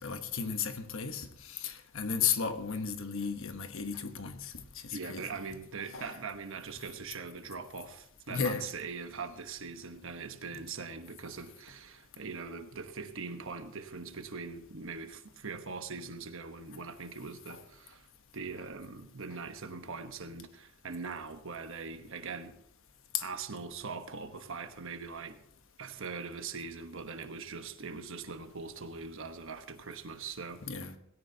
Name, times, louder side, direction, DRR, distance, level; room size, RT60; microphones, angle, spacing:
voice 1, 0.0-4.5 4.8-5.3 5.9-6.1 8.3-8.6 17.5-17.6 23.1-23.2 30.7-30.9, left 6 dB, 65° left, 1.1 m, -34 dB
voice 2, 4.9-18.1 18.3-22.6 23.2-25.4 25.8-30.6, right 4 dB, 65° right, 1.1 m, -41 dB
17.0 x 17.0 x 2.8 m
head